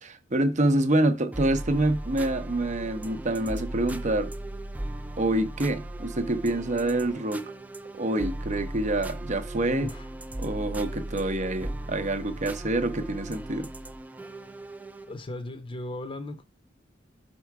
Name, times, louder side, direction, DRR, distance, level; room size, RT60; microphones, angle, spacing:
voice 1, 0.0-4.3 5.2-7.4 8.0-9.9 10.4-13.7, right 1 dB, 40° right, 0.7 m, -26 dB
sound 1, 1.3-15.1, right 1 dB, 10° right, 0.4 m, -37 dB
voice 2, 9.6-10.1 15.1-16.4, left 1 dB, 25° left, 0.7 m, -37 dB
5.7 x 4.5 x 4.7 m
head